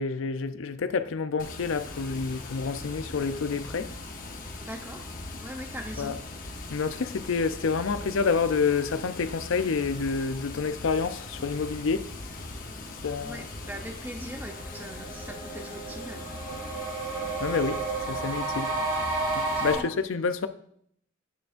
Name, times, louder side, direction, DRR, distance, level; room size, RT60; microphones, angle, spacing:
voice 1, 0.0-3.9 6.0-6.1 6.7-12.1 13.0-13.4 17.4-18.7 19.3-20.5, left 5 dB, 70° left, 0.5 m, -28 dB
Water, 1.4-19.8, left 2 dB, 40° left, 0.8 m, -40 dB
voice 2, 4.6-5.1 5.4-6.2 13.2-16.3 19.6-19.9, equal, 10° right, 0.6 m, -41 dB
sound 1, 14.0-14.1 14.4-19.7, right 3 dB, 65° right, 2.2 m, -32 dB
8.9 x 6.7 x 2.5 m
head